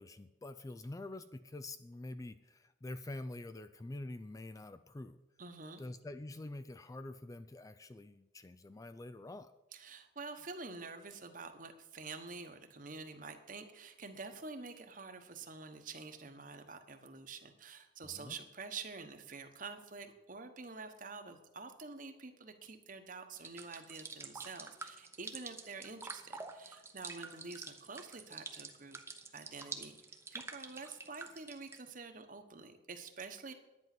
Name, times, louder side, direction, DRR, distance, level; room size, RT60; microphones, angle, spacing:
voice 1, 0.0-5.2 5.8-9.5 18.0-18.4, left 2 dB, 20° left, 11 dB, 0.3 m, -46 dB
voice 2, 5.4-5.8 9.7-29.0 29.3-30.0 30.3-33.5, right 4 dB, 45° right, 7 dB, 1.1 m, -48 dB
sound 1, 23.3-31.8, right 3 dB, 15° right, 0.8 m, -47 dB
11.0 x 9.3 x 6.0 m, 1.0 s
head